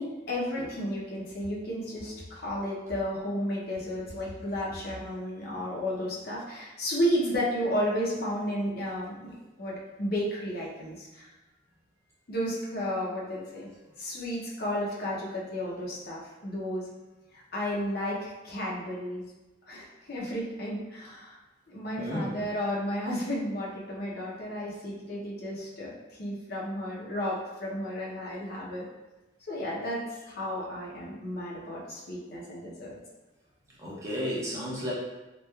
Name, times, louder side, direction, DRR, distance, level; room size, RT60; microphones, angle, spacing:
voice 1, 0.0-9.3 9.6-11.3 12.3-13.7 14.0-16.9 17.5-19.2 19.7-21.4 21.7-28.9 29.5-32.9, equal, 55° left, -5 dB, 0.6 m, -33 dB
voice 2, 22.0-22.4 33.8-34.9, equal, 15° right, -7 dB, 0.6 m, -33 dB
2.9 x 2.2 x 2.3 m, 1.1 s
head